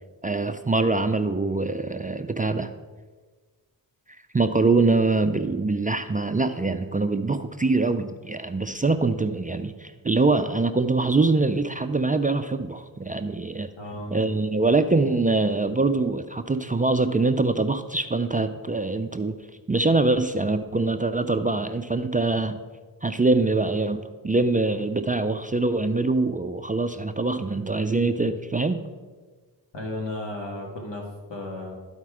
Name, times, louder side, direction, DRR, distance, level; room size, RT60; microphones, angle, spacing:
voice 1, 0.2-2.7 4.3-13.7 14.1-19.4 19.7-22.6 23.0-28.8, right 3 dB, 20° right, 8 dB, 0.4 m, -24 dB
voice 2, 13.8-14.2 29.7-31.7, left 1 dB, 75° left, 0 dB, 2.0 m, -34 dB
12.5 x 4.4 x 4.8 m, 1.4 s
cardioid pair, 65°, 43 cm